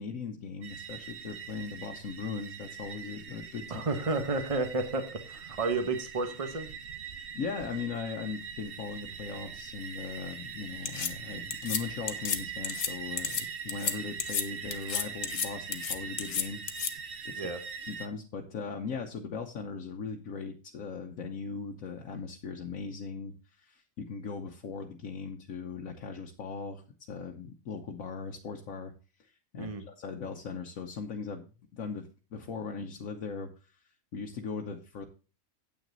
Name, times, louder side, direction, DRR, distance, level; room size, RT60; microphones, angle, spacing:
voice 1, 0.0-3.8 7.3-16.6 17.2-17.5 17.9-26.8 27.1-28.9 29.2-33.8 34.1-35.0, left 5 dB, 75° left, 2 dB, 1.4 m, -39 dB
sound 1, 0.6-18.1, right 6 dB, 50° right, 1.0 m, -42 dB
voice 2, 3.7-6.7 17.4-17.6 29.6-29.8, right 3 dB, 25° right, 8 dB, 1.3 m, -31 dB
sound 2, 10.9-11.1 11.5-11.8 12.1-12.4 12.6-12.9 13.2-13.4 13.7-13.9 14.2-14.4 14.7-15.5 15.7-16.9, left 6 dB, 50° left, 1.2 m, -31 dB
9.2 x 8.5 x 4.0 m, 0.35 s
omnidirectional pair, 1.4 m